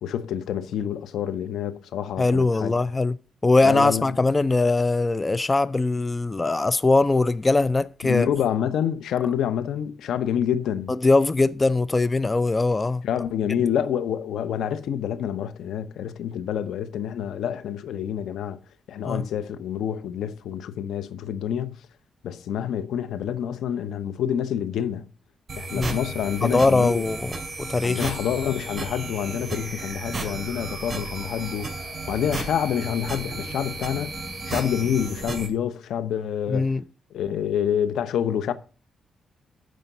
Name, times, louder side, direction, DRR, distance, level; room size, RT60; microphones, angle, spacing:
voice 1, 0.0-2.7 3.6-4.0 8.0-10.9 13.0-18.6 18.9-21.8 22.2-25.0 25.6-27.0 27.8-34.1 34.5-36.7 37.1-38.5, left 9 dB, 80° left, 0.9 m, -27 dB
voice 2, 2.2-3.2 3.4-8.3 10.9-13.0 19.1-19.3 25.7-26.0 26.4-28.1 36.5-36.8, left 3 dB, 25° left, 0.5 m, -21 dB
sound 1, 25.5-35.5, right 3 dB, 30° right, 4.7 m, -34 dB
13.0 x 5.2 x 6.8 m
cardioid pair, 75°, 0 cm